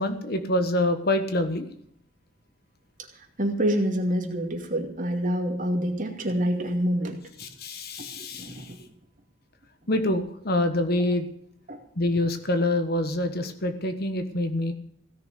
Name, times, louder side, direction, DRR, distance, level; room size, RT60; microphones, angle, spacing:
voice 1, 0.0-1.7 7.4-8.7 9.9-11.3 12.0-14.7, left 1 dB, 55° left, 8 dB, 1.3 m, -26 dB
voice 2, 3.1-7.2 8.1-8.6 11.7-11.8, equal, 45° right, 2 dB, 2.5 m, -27 dB
17.0 x 6.6 x 9.7 m, 0.70 s
head